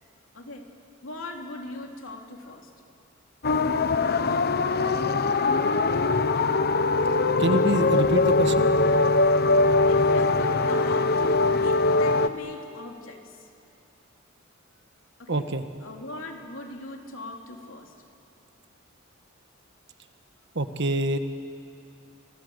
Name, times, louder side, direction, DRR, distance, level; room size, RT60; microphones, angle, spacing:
voice 1, 0.3-0.7 1.0-2.7 9.8-13.4 15.2-15.5 15.8-17.9, left 2 dB, 75° left, 2 dB, 3.2 m, -40 dB
sound 1, 3.4-12.3, left 3 dB, 50° left, 0.9 m, -22 dB
voice 2, 7.4-8.6 15.3-15.6 20.5-21.2, right 1 dB, 60° right, 9 dB, 1.4 m, -25 dB
29.0 x 23.5 x 8.1 m, 2.5 s
head